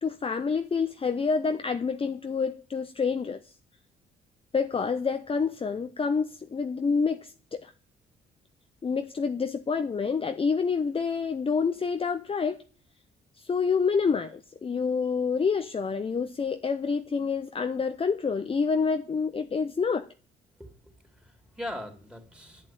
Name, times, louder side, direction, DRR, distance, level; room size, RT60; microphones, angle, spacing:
voice 1, 0.0-3.5 4.5-7.7 8.8-12.6 13.4-20.1, left 5 dB, 30° left, 0.7 m, -28 dB
voice 2, 20.6-22.7, left 1 dB, 5° right, 3.3 m, -41 dB
11.0 x 7.6 x 9.2 m
cardioid pair, 90°, 20 cm